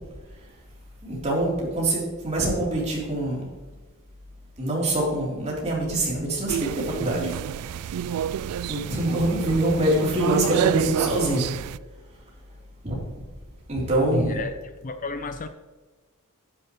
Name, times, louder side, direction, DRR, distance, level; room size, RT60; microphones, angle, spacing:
voice 1, 1.0-3.4 4.6-7.3 8.7-11.5 12.8-13.0 13.7-14.4, right 1 dB, 30° right, -4 dB, 3.4 m, -24 dB
sound 1, 6.5-11.8, right 9 dB, 80° right, 0.3 m, -29 dB
voice 2, 14.1-14.6 14.8-15.5, left 2 dB, 40° left, 9 dB, 0.5 m, -29 dB
11.5 x 9.7 x 3.1 m, 1.3 s
head